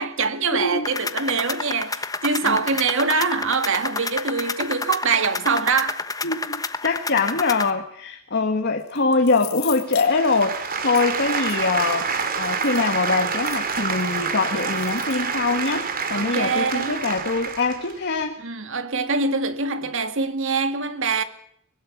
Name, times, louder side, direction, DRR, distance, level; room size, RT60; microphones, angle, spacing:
voice 1, 0.0-6.0 16.1-17.0 18.4-21.2, right 4 dB, 65° right, 2.1 m, -24 dB
voice 2, 0.5-0.9 2.4-2.6 6.2-12.1 12.4-18.4, left 3 dB, 50° left, 1.6 m, -23 dB
sound 1, 0.8-7.7, left 4 dB, 15° left, 1.1 m, -30 dB
sound 2, 8.8-11.0 11.5-11.6 12.1-14.2 14.5-15.2, left 15 dB, 90° left, 3.3 m, -39 dB
sound 3, 9.9-17.9, right 5 dB, 45° right, 2.7 m, -27 dB
24.0 x 21.0 x 7.3 m
head